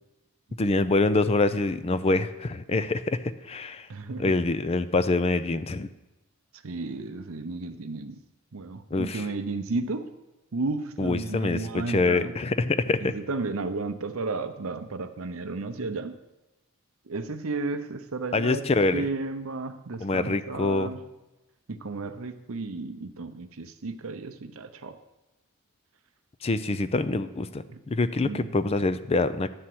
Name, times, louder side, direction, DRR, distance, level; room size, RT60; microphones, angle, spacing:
voice 1, 0.6-3.2 3.5-3.9 4.2-5.9 8.9-9.3 11.0-13.1 18.3-19.1 20.0-20.9 26.4-29.5, left 3 dB, 25° left, 12 dB, 0.4 m, -25 dB
voice 2, 3.9-4.4 6.6-8.2 8.5-10.1 10.5-12.4 13.0-16.2 17.1-18.7 18.9-21.0 21.7-25.0 27.7-27.8 28.2-28.6, right 3 dB, 65° right, 10 dB, 0.7 m, -33 dB
11.0 x 4.3 x 7.7 m, 1.0 s
head